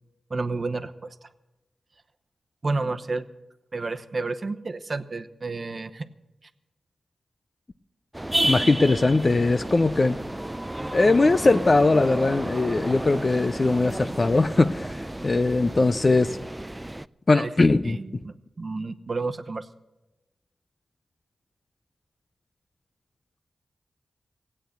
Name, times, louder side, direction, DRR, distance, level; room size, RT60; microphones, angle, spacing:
voice 1, 0.3-0.9 1.2-1.3 2.6-3.2 3.7-6.1 17.3-17.5 17.8-19.7, right 3 dB, 50° right, 0.9 m, -30 dB
sound 1, 8.1-17.1, right 1 dB, 15° right, 0.4 m, -31 dB
voice 2, 8.4-10.2 10.9-16.4 17.3-18.0, left 3 dB, 40° left, 0.5 m, -20 dB
17.0 x 8.7 x 7.9 m
cardioid pair, 55°, 0 cm